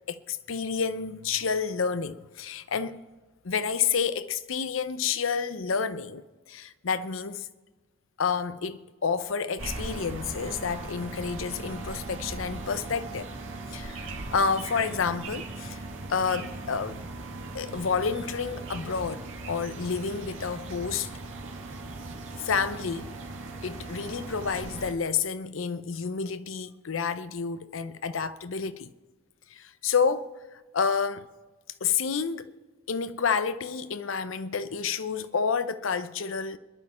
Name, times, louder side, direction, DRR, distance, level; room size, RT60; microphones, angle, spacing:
voice 1, 0.1-3.0 3.4-7.5 8.2-13.3 13.7-15.8 16.1-17.0 17.5-21.1 22.4-23.1 23.6-28.9 29.5-31.3 31.8-32.5 32.9-36.6, left 5 dB, 80° left, 0.7 m, -29 dB
sound 1, 9.6-24.9, right 2 dB, 75° right, 2.0 m, -39 dB
27.5 x 11.0 x 4.3 m
head